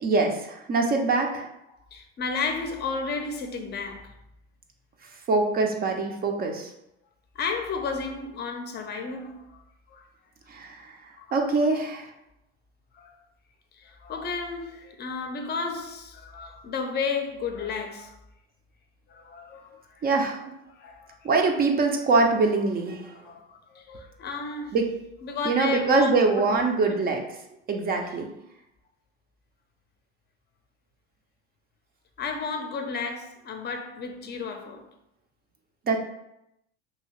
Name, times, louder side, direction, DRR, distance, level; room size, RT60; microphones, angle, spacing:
voice 1, 0.0-1.5 5.3-6.7 10.5-10.8 11.3-12.1 20.0-20.4 21.2-23.1 24.7-24.9 25.4-27.2 27.7-28.3 35.9-36.0, right 3 dB, 30° right, 0.5 m, -23 dB
voice 2, 1.7-4.1 7.4-9.6 9.9-10.1 11.2-11.4 12.9-13.2 13.8-18.2 19.1-20.1 20.7-21.1 23.1-24.8 25.2-26.6 32.2-34.9, left 4 dB, 30° left, 0.6 m, -33 dB
2.8 x 2.7 x 3.0 m
hypercardioid pair, 85°, 32 cm